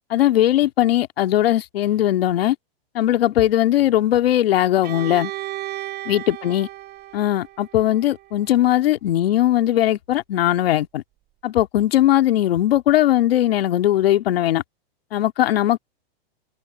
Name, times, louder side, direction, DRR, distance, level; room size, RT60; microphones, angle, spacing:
voice 1, 0.1-2.6 2.9-5.3 6.1-6.7 7.1-11.0 11.4-14.6 15.1-15.8, left 13 dB, 70° left, 2.2 m, -19 dB
Bowed string instrument, 4.8-8.7, right 16 dB, 30° right, 6.8 m, -35 dB
hypercardioid pair, 140°, 31 cm